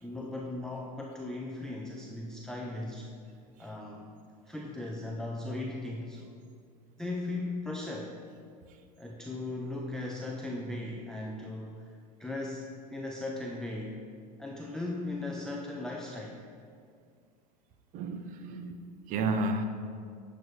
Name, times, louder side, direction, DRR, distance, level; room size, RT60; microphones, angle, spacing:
voice 1, 0.0-3.2 3.6-4.1 4.5-6.3 7.0-8.1 9.0-11.9 12.2-14.0 14.4-16.4, left 2 dB, 5° left, 0.5 m, -37 dB
voice 2, 17.9-19.7, right 2 dB, 40° right, 0.7 m, -32 dB
8.9 x 6.0 x 3.1 m
hypercardioid pair, 105°, 21 cm